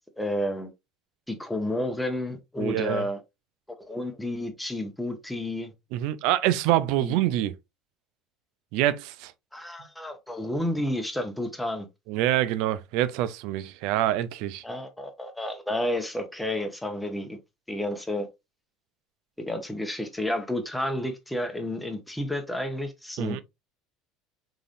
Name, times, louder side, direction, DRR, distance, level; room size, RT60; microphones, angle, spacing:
voice 1, 0.2-0.7 1.3-3.2 3.8-5.7 7.0-7.1 9.5-11.9 14.6-17.4 17.7-18.3 19.4-23.4, left 1 dB, 5° left, 1.2 m, -31 dB
voice 2, 2.6-3.1 5.9-7.5 8.7-9.3 12.1-14.6 23.2-23.4, right 13 dB, 60° right, 0.5 m, -26 dB
4.8 x 3.9 x 2.6 m
figure-of-eight pair, 65°, 0 cm